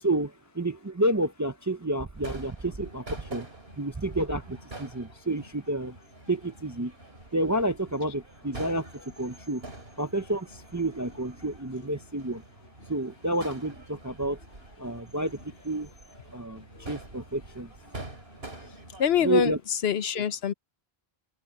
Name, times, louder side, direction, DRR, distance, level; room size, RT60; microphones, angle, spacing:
voice 1, 0.0-3.5 3.8-6.0 6.3-6.9 7.3-8.9 9.2-9.7 10.0-12.4 12.9-14.4 14.8-15.4 15.6-15.9 16.3-18.0 19.2-19.6, right 1 dB, 20° right, 0.5 m, -30 dB
Crowd / Fireworks, 2.2-19.5, right 2 dB, 75° right, 3.9 m, -46 dB
voice 2, 19.0-20.5, left 8 dB, 80° left, 1.1 m, -25 dB
open air
omnidirectional pair, 1.0 m